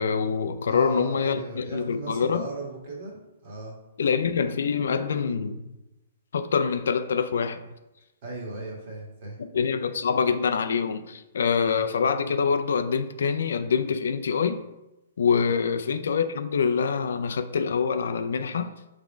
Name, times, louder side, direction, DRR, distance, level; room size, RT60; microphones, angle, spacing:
voice 1, 0.0-2.5 4.0-5.8 6.3-7.6 9.4-14.6 15.2-18.7, left 6 dB, 70° left, 0.5 m, -25 dB
voice 2, 0.6-3.2 3.4-3.7 8.2-9.4, right 2 dB, 35° right, 1.7 m, -37 dB
6.1 x 3.6 x 5.1 m
hypercardioid pair, 175°, 0 cm